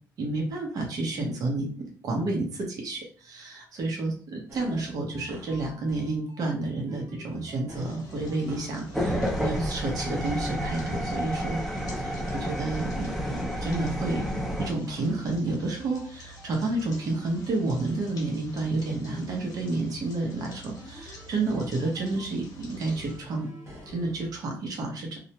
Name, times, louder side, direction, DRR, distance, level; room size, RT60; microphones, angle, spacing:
voice 1, 0.2-11.6 12.0-14.3 14.6-23.5 23.9-25.2, right 2 dB, 60° right, 0 dB, 0.9 m, -30 dB
sound 1, 4.5-6.5 6.9-9.5 10.3-12.9 13.5-16.1 16.4-19.3 20.8-22.3 22.9-24.3, equal, 35° right, 1.0 m, -46 dB
sound 2, 7.7-23.2, equal, 60° left, 0.9 m, -48 dB
sound 3, 8.9-14.7, equal, ahead, 0.6 m, -30 dB
2.5 x 2.1 x 2.8 m, 0.40 s
cardioid pair, 100°, 7 cm